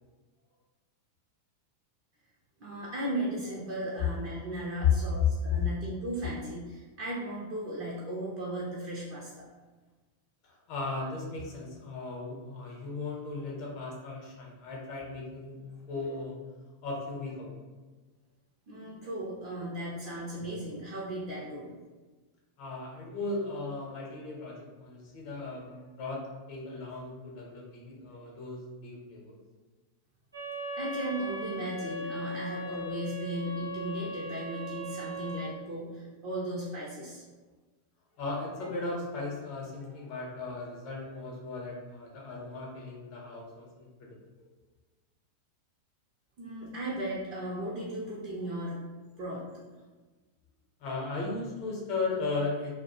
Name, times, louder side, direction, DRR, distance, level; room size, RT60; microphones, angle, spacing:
voice 1, 2.6-9.5 18.7-21.7 30.7-37.2 46.4-48.8 49.2-49.8, right 1 dB, 40° right, -7 dB, 0.6 m, -36 dB
voice 2, 10.4-16.4 16.8-17.6 22.6-29.4 38.2-44.5 50.8-52.7, left 3 dB, 40° left, -2 dB, 0.7 m, -37 dB
sound 1, 30.3-35.5, right 1 dB, 85° right, 0.7 m, -38 dB
2.2 x 2.0 x 2.9 m, 1.3 s
figure-of-eight pair, 90°, 0 cm